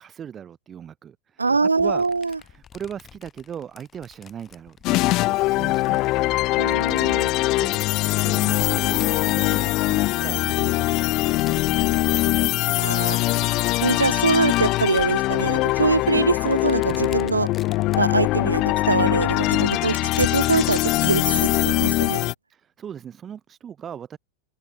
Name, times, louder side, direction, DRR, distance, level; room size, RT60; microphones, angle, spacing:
voice 1, 0.0-2.0 2.4-7.0 7.4-7.7 8.1-12.1 22.5-24.2, right 8 dB, 25° right, 2.4 m, -39 dB
voice 2, 1.4-2.4 6.6-7.3 12.7-13.2 13.8-17.5 18.0-22.2, right 4 dB, 80° right, 0.3 m, -23 dB
sound 1, 1.8-7.6 8.3-9.8 10.8-12.5 13.3-15.6 16.0-18.2 18.6-18.7 19.0-21.3, left 8 dB, 25° left, 5.8 m, -44 dB
sound 2, 4.8-22.3, left 19 dB, 40° left, 0.3 m, -22 dB
open air
figure-of-eight pair, 90°, 0 cm